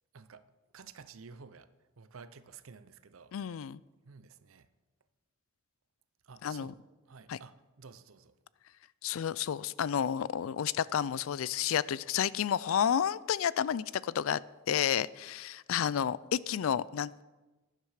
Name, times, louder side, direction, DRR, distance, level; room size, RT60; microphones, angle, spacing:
voice 1, 0.1-0.4 0.7-1.7 2.0-3.6 4.0-4.7 6.2-6.8 7.1-8.4, right 5 dB, 90° right, 0.7 m, -52 dB
voice 2, 3.3-3.8 6.4-6.7 7.3-7.4 9.0-14.4 14.7-17.2, left 8 dB, 80° left, 0.4 m, -31 dB
12.0 x 10.0 x 4.9 m
head